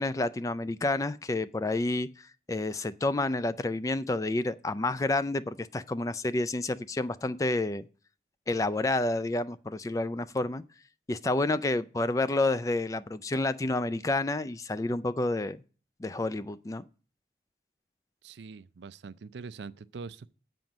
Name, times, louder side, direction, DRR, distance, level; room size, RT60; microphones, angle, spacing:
voice 1, 0.0-7.8 8.5-10.6 11.1-15.6 16.0-16.8, left 2 dB, 20° left, 0.3 m, -29 dB
voice 2, 18.2-20.3, right 4 dB, 85° right, 0.4 m, -43 dB
7.6 x 5.2 x 7.1 m
head